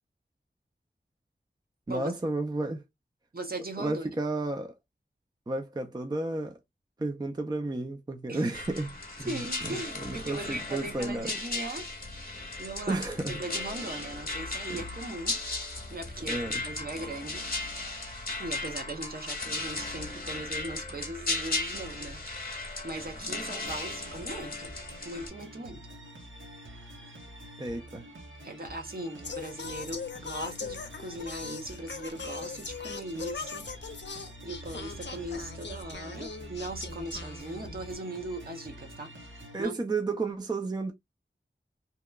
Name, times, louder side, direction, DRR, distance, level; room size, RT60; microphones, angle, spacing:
voice 1, 1.9-2.8 3.8-4.7 5.5-6.6 7.0-11.3 12.9-13.4 14.7-14.9 16.2-16.6 27.6-28.1 39.5-40.9, right 2 dB, 20° right, 0.4 m, -32 dB
voice 2, 3.3-4.1 8.3-8.5 9.3-11.9 12.6-13.0 13.4-15.4 15.9-17.5 18.4-22.5 22.8-24.8 25.0-25.9 28.4-33.9 34.4-39.1 39.6-39.7, right 2 dB, 50° right, 0.7 m, -39 dB
sound 1, 8.5-25.3, left 2 dB, 50° left, 0.9 m, -36 dB
sound 2, 23.6-39.6, right 1 dB, 90° right, 0.7 m, -48 dB
Singing, 29.2-37.9, left 5 dB, 70° left, 0.5 m, -40 dB
2.8 x 2.1 x 2.2 m
wide cardioid pair, 50°, 19 cm